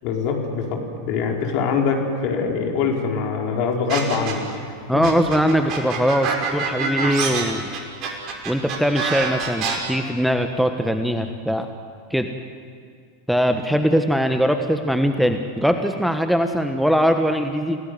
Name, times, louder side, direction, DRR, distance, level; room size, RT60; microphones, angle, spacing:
voice 1, 0.0-4.4 4.9-5.0, left 5 dB, 50° left, 1 dB, 4.8 m, -23 dB
sound 1, 3.9-4.6 5.0-9.8, right 5 dB, 40° right, 5.4 m, -25 dB
voice 2, 4.9-7.6 8.4-11.7 12.1-12.3 13.3-17.8, equal, ahead, 6 dB, 1.4 m, -21 dB
29.0 x 18.0 x 9.6 m, 2.1 s
figure-of-eight pair, 90°, 0 cm